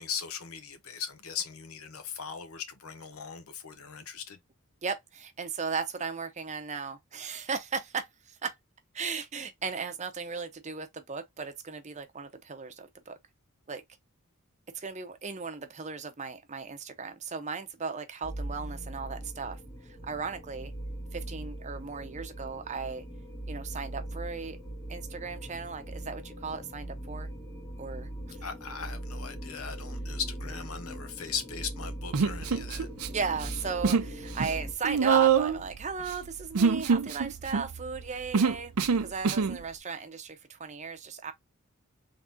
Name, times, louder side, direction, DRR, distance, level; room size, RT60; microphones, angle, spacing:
voice 1, 0.0-4.4 28.4-32.9, left 7 dB, 75° left, 0.8 m, -38 dB
voice 2, 4.8-8.5 8.9-13.2 13.7-13.8 14.7-20.7 21.1-23.0 23.5-24.6 24.9-27.3 27.8-28.4 33.1-38.7 39.0-41.3, right 5 dB, 30° right, 0.7 m, -36 dB
sound 1, 18.2-34.7, right 1 dB, 10° left, 1.0 m, -40 dB
Human voice, 32.1-33.1 33.4-34.1 34.4-39.6, right 6 dB, 80° right, 0.5 m, -26 dB
3.7 x 3.5 x 2.6 m
head